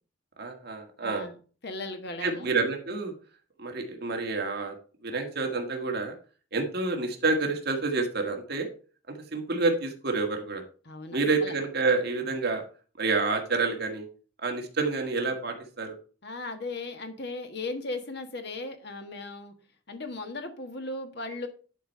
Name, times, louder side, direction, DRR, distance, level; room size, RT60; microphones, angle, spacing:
voice 1, 0.4-1.3 2.2-3.1 3.6-4.7 5.0-6.2 6.5-8.7 9.3-10.6 11.1-12.6 13.0-14.1 14.4-16.0, right 3 dB, 55° right, 4 dB, 1.6 m, -28 dB
voice 2, 1.0-1.4 1.6-2.6 10.8-11.5 16.2-19.5 19.9-21.5, left 2 dB, 60° left, 6 dB, 1.5 m, -37 dB
11.0 x 4.6 x 5.5 m, 0.39 s
head